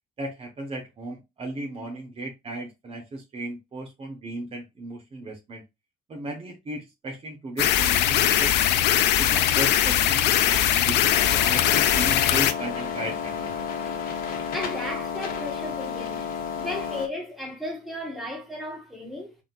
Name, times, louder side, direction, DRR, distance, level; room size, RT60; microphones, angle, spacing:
voice 1, 0.2-5.6 6.1-8.6 9.2-13.5, right 2 dB, 35° right, 1.1 m, -36 dB
sound 1, 7.6-12.5, left 11 dB, 80° left, 0.5 m, -21 dB
sound 2, 11.1-17.1, left 7 dB, 60° left, 1.2 m, -31 dB
voice 2, 14.5-16.3 16.6-19.4, left 1 dB, ahead, 1.8 m, -35 dB
4.1 x 3.6 x 2.4 m
cardioid pair, 110°, 17 cm